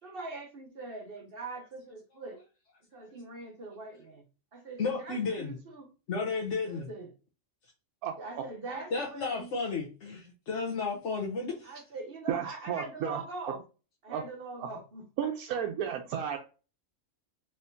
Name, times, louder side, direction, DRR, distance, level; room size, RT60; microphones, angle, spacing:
voice 1, 0.0-2.4 2.9-4.2 4.5-5.9 6.7-7.1 8.2-9.5 11.6-13.6 14.0-15.0 15.5-15.9, right 3 dB, 45° right, 1.2 m, -42 dB
voice 2, 4.8-5.6 6.1-6.9 8.9-11.8, left 4 dB, 60° left, 1.1 m, -33 dB
voice 3, 12.3-13.2 14.1-14.2 14.6-14.7 15.2-16.4, right 9 dB, 90° right, 1.1 m, -32 dB
4.3 x 3.4 x 2.6 m
omnidirectional pair, 1.5 m